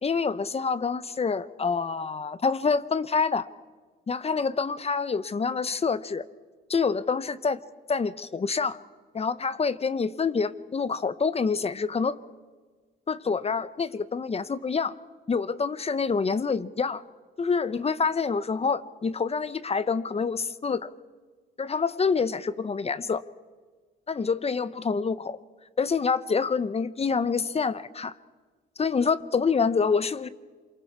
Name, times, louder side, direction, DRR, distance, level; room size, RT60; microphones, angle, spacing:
voice 1, 0.0-3.5 4.1-6.2 6.7-7.6 7.9-8.8 9.1-12.2 13.1-14.9 15.3-17.0 17.4-20.9 21.6-23.2 24.1-25.4 25.8-28.1 28.8-30.3, left 5 dB, 30° left, 15 dB, 0.9 m, -27 dB
27.5 x 24.0 x 4.7 m, 1.4 s
cardioid pair, 90°, 20 cm